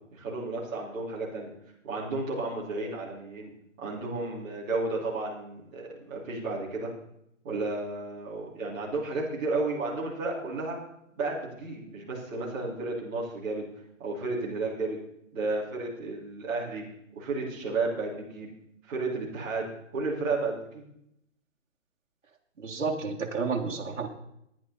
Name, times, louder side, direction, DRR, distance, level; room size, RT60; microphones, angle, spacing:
voice 1, 0.1-1.5 1.8-3.5 3.8-6.9 7.4-10.8 11.1-13.6 14.0-15.0 15.3-16.8 17.1-18.5 18.9-20.8, right 3 dB, 10° right, -9 dB, 2.8 m, -32 dB
voice 2, 22.6-24.1, right 4 dB, 65° right, 0 dB, 1.9 m, -31 dB
15.0 x 10.0 x 4.2 m, 0.76 s
hypercardioid pair, 180°, 39 cm